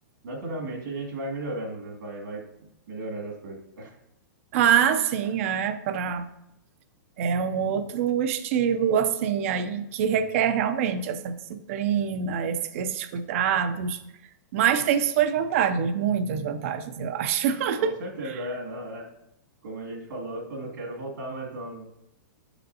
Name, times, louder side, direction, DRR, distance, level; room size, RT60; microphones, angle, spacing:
voice 1, 0.2-3.9 17.8-19.1 19.6-21.9, right 1 dB, 80° right, -1 dB, 2.4 m, -35 dB
voice 2, 4.5-6.2 7.2-14.0 14.5-17.9, right 8 dB, 45° right, 11 dB, 0.5 m, -25 dB
7.1 x 6.9 x 2.7 m, 0.84 s
hypercardioid pair, 165°, 11 cm